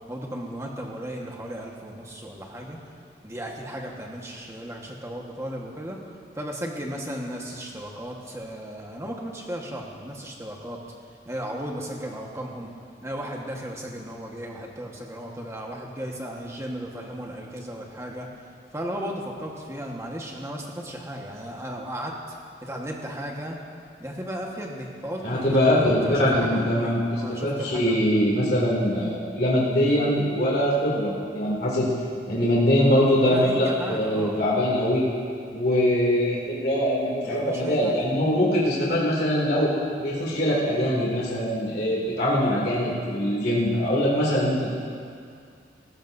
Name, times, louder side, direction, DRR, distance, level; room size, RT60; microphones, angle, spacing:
voice 1, 0.1-2.8 3.2-6.0 6.3-10.8 11.2-12.7 13.0-18.3 18.7-22.1 22.6-23.6 24.0-28.0 33.2-34.4 37.2-38.0, equal, 15° right, -1 dB, 1.4 m, -35 dB
voice 2, 25.2-31.9 32.3-35.1 35.5-39.7 40.0-44.7, equal, 60° left, -5 dB, 2.7 m, -23 dB
18.5 x 15.5 x 2.7 m, 2.3 s
head